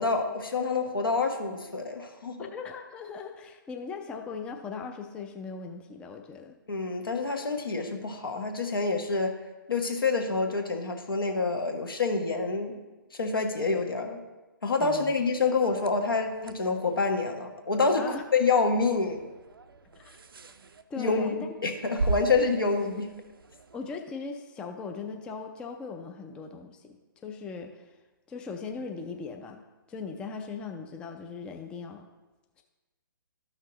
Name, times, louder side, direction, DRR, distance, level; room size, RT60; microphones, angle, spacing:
voice 1, 0.0-2.5 6.7-9.3 9.7-12.7 13.1-14.2 14.6-19.2 20.9-21.3 21.6-23.1, left 4 dB, 80° left, 4 dB, 1.2 m, -27 dB
voice 2, 2.4-6.6 14.8-15.1 17.9-18.2 19.9-20.2 20.9-21.4 23.7-27.9 28.3-29.6 29.9-32.1, left 5 dB, 10° left, 4 dB, 0.3 m, -39 dB
sound 1, 15.6-24.0, right 3 dB, 80° right, 0.5 m, -39 dB
12.5 x 5.8 x 2.9 m, 1.2 s
figure-of-eight pair, 135°, 12 cm